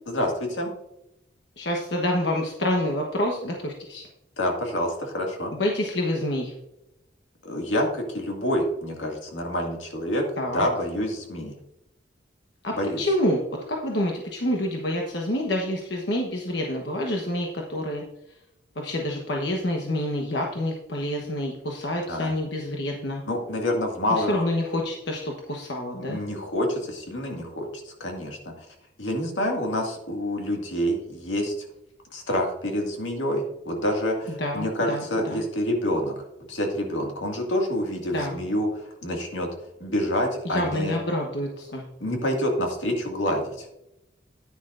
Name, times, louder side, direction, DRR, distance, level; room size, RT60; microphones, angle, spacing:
voice 1, 0.1-0.7 4.4-5.5 7.4-10.3 10.5-11.6 12.7-13.0 22.1-22.3 23.3-24.3 26.1-28.7 29.0-31.5 32.1-36.2 36.5-39.5 39.8-41.0 42.0-43.7, equal, 85° left, 1 dB, 2.1 m, -27 dB
voice 2, 1.6-4.0 5.5-6.5 10.4-10.6 12.6-13.4 13.7-18.0 18.7-23.2 24.1-26.2 34.4-35.4 38.1-38.4 40.4-41.9, left 1 dB, 65° left, 0 dB, 1.2 m, -27 dB
10.0 x 10.0 x 2.6 m, 0.86 s
head